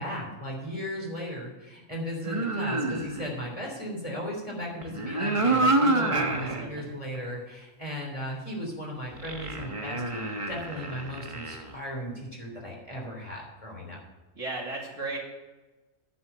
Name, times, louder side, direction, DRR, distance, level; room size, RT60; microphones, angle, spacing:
voice 1, 0.0-14.0, equal, 25° left, -2 dB, 3.4 m, -36 dB
sound 1, 2.2-3.4 4.8-6.6 7.1-7.2 9.1-11.7, right 2 dB, 25° right, 1.0 m, -28 dB
voice 2, 6.2-6.9 14.3-15.2, right 3 dB, 75° right, -2 dB, 3.0 m, -36 dB
10.5 x 8.4 x 5.6 m, 1.2 s
omnidirectional pair, 1.3 m